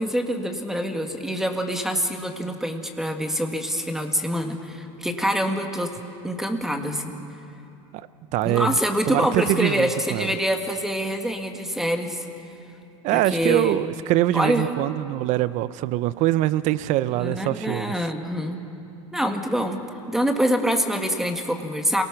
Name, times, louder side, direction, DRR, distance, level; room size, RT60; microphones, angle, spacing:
voice 1, 0.0-5.9 6.2-7.2 8.4-12.2 13.1-13.8 14.3-14.7 17.1-18.6 19.1-22.0, equal, 5° right, 5 dB, 1.8 m, -25 dB
voice 2, 8.3-8.8 9.1-10.3 13.0-17.9, right 15 dB, 50° right, 16 dB, 0.7 m, -23 dB
28.0 x 19.0 x 6.0 m, 2.7 s
supercardioid pair, 110°, 15 cm